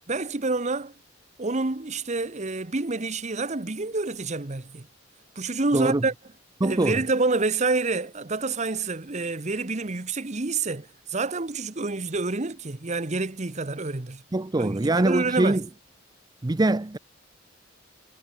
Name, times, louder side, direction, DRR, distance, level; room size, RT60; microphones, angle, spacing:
voice 1, 0.1-0.9 1.4-4.9 5.4-6.1 6.6-14.2 14.5-15.6, right 3 dB, 35° right, 1.1 m, -28 dB
voice 2, 5.7-6.0 6.6-7.0 14.3-15.7 16.4-17.0, right 2 dB, 20° right, 0.5 m, -23 dB
head